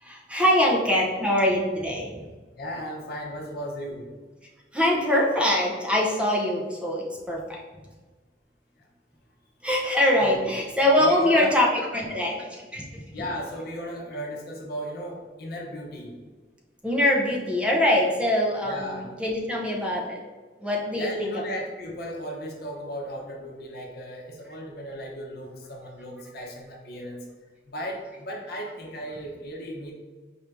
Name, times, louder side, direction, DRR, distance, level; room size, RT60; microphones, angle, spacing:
voice 1, 0.0-2.2 4.7-7.6 9.6-12.9 16.8-20.2 20.6-21.4, left 1 dB, 5° right, -2 dB, 0.6 m, -23 dB
voice 2, 2.6-4.0 10.2-10.4 11.0-11.5 13.1-16.1 18.6-19.1 20.9-27.2 27.7-29.9, equal, 60° left, 0 dB, 0.8 m, -35 dB
4.4 x 2.7 x 3.4 m, 1.3 s
head